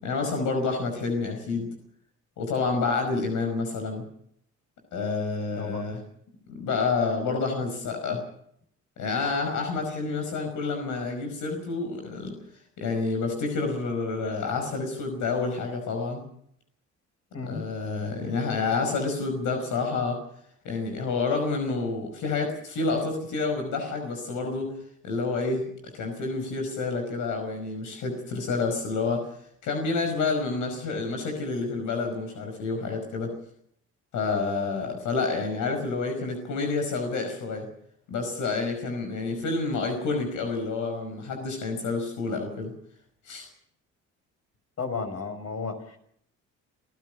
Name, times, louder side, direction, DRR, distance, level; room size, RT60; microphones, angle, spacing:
voice 1, 0.0-1.7 2.4-4.0 4.9-6.0 6.5-8.2 9.0-12.3 12.8-16.2 17.4-20.2 20.6-24.7 25.0-29.4 29.6-33.3 34.1-37.7 38.1-42.7 43.2-43.5, left 4 dB, 85° left, 4 dB, 5.4 m, -29 dB
voice 2, 44.8-46.0, left 4 dB, 50° left, 6 dB, 5.7 m, -33 dB
27.0 x 15.5 x 6.6 m, 0.67 s
cardioid pair, 90°, 30 cm